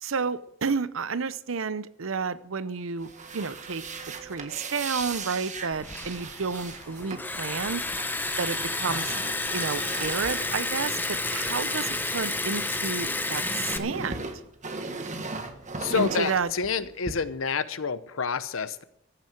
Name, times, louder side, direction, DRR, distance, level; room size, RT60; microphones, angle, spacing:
voice 1, 0.0-3.8 4.2-7.8 8.4-9.2 9.5-14.3 16.0-16.5, right 5 dB, 80° right, 16 dB, 0.7 m, -31 dB
sound 1, 3.0-12.8 13.1-17.1, right 3 dB, 40° right, 1.6 m, -38 dB
Bowed string instrument, 3.0-7.4, right 4 dB, 55° right, 4.1 m, -53 dB
Liquid, 5.7-13.8, left 2 dB, 10° left, 0.8 m, -31 dB
voice 2, 15.8-18.8, left 5 dB, 80° left, 14 dB, 0.9 m, -28 dB
14.5 x 7.6 x 7.9 m, 0.73 s
head